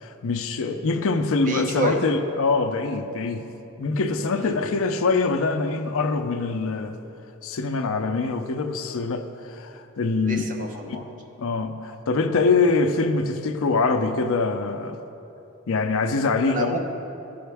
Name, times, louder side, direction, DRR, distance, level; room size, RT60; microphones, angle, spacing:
voice 1, 0.0-3.5 3.8-7.0 7.4-10.5 10.9-11.0 11.4-15.0 15.7-16.8, left 3 dB, 65° left, 7 dB, 0.5 m, -24 dB
voice 2, 1.5-2.1 4.3-4.6 10.2-11.0 16.5-16.8, right 1 dB, 40° right, 2 dB, 0.9 m, -28 dB
15.0 x 5.5 x 3.4 m, 2.8 s
head